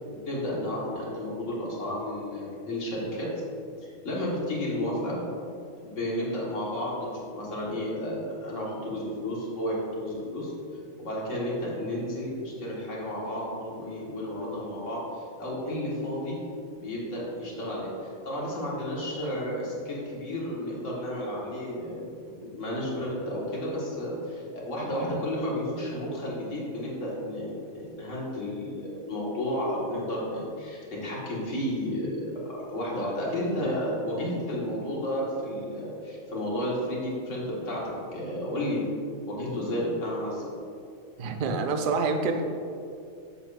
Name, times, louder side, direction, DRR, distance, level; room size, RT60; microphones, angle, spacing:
voice 1, 0.1-3.3 3.8-5.2 5.8-10.5 11.0-16.4 16.8-40.5, left 1 dB, 65° left, -5 dB, 1.8 m, -32 dB
voice 2, 41.2-42.4, right 4 dB, 55° right, 5 dB, 0.6 m, -27 dB
7.5 x 6.8 x 2.5 m, 2.4 s
omnidirectional pair, 1.4 m